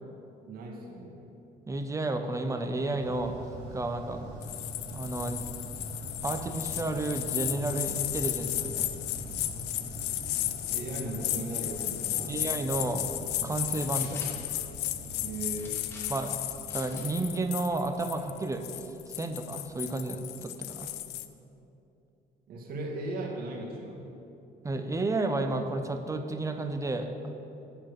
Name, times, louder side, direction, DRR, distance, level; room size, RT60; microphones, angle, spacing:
voice 1, 0.5-1.2 10.4-12.4 15.2-15.8 22.5-24.1, right 2 dB, 60° right, 0 dB, 1.9 m, -37 dB
voice 2, 1.7-3.4 3.7-4.2 4.9-5.5 6.2-8.9 12.3-13.1 13.4-14.3 16.1-16.4 16.7-18.6 19.1-20.9 24.6-27.1, right 2 dB, 20° right, 7 dB, 0.7 m, -31 dB
sound 1, 2.8-17.8, right 1 dB, 80° right, 1.6 m, -43 dB
sound 2, 4.4-21.3, left 15 dB, 90° left, 0.5 m, -34 dB
sound 3, 13.4-14.5 15.6-16.3 16.7-17.1 17.6-18.2, left 1 dB, 15° left, 2.4 m, -49 dB
8.7 x 6.0 x 8.2 m, 2.9 s
cardioid pair, 110°, 17 cm